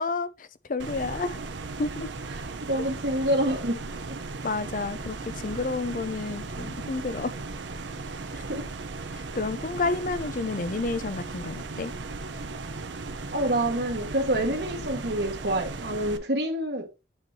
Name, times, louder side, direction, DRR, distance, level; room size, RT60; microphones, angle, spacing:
voice 1, 0.0-1.4 1.8-2.1 4.4-5.2 5.4-7.3 9.1-11.9, left 3 dB, 45° left, 0.5 m, -30 dB
sound 1, 0.8-16.2, right 3 dB, 85° right, 0.7 m, -37 dB
voice 2, 2.3-3.8 4.1-4.2 8.3-8.6 13.3-16.9, right 1 dB, 65° right, 1.6 m, -27 dB
8.6 x 4.6 x 2.8 m
head